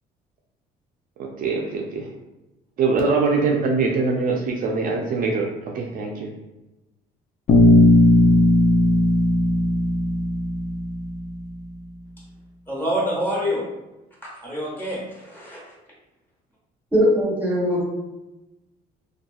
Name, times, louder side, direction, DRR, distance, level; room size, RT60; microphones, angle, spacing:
voice 1, 1.2-2.1 2.8-6.3, right 4 dB, 55° right, 0 dB, 0.4 m, -23 dB
Bass guitar, 7.5-11.5, left 1 dB, 40° left, 0.4 m, -17 dB
voice 2, 12.7-13.7 14.4-15.6, equal, 10° left, -6 dB, 1.1 m, -26 dB
voice 3, 16.9-17.8, equal, 10° right, -5 dB, 0.9 m, -20 dB
2.8 x 2.2 x 2.3 m, 1.0 s
cardioid pair, 110°, 17 cm